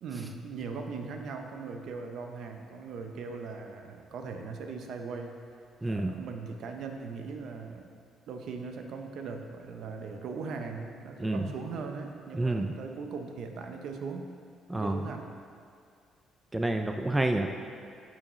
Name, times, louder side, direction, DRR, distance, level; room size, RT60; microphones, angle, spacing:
voice 1, 0.0-5.4 5.9-7.9 8.3-14.3 14.7-15.3, right 4 dB, 60° right, 4 dB, 0.7 m, -39 dB
voice 2, 5.8-6.1 11.2-11.5 12.3-12.7 14.7-15.1 16.5-17.5, right 2 dB, 10° right, 4 dB, 0.3 m, -28 dB
12.5 x 6.3 x 3.2 m, 2.3 s
cardioid pair, 155°, 0 cm